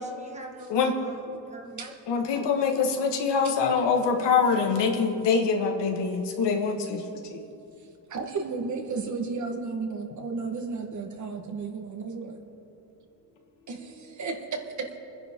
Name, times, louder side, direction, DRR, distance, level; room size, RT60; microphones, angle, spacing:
voice 1, 0.0-2.2, right 1 dB, 15° right, 2 dB, 1.6 m, -45 dB
voice 2, 2.1-7.4, left 5 dB, 70° left, 3 dB, 1.8 m, -24 dB
voice 3, 8.1-12.4 13.7-15.0, right 4 dB, 40° right, 4 dB, 1.6 m, -33 dB
25.0 x 10.5 x 3.8 m, 2.8 s
cardioid pair, 130°, 43 cm